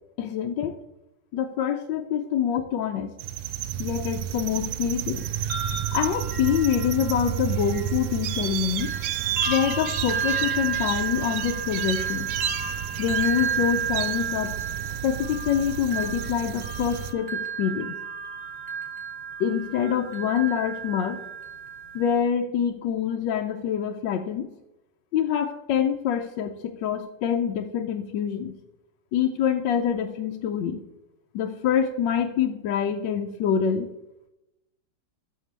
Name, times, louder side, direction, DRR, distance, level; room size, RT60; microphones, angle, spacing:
voice 1, 0.2-0.8 1.3-3.1 3.8-5.2 5.9-8.9 9.5-12.3 13.0-14.6 15.0-18.0 19.4-21.2 21.9-24.5 25.1-28.6 29.1-30.8 31.3-33.9, left 8 dB, 90° left, 4 dB, 1.3 m, -26 dB
sound 1, 3.2-17.1, right 11 dB, 75° right, 1.2 m, -31 dB
sound 2, 5.2-8.5 8.8-22.2, right 5 dB, 35° right, 1.6 m, -32 dB
12.5 x 6.7 x 3.3 m, 0.93 s
omnidirectional pair, 2.0 m